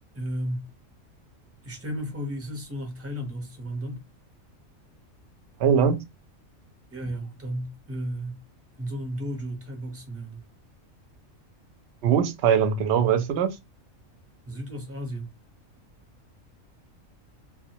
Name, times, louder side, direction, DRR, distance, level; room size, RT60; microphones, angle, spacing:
voice 1, 0.1-0.7 1.6-4.0 6.9-8.4 8.8-10.4 14.5-15.3, equal, 15° right, 0.5 m, -34 dB
voice 2, 5.6-6.0 12.0-13.6, right 7 dB, 65° right, 0.7 m, -21 dB
2.2 x 2.1 x 2.7 m
omnidirectional pair, 1.4 m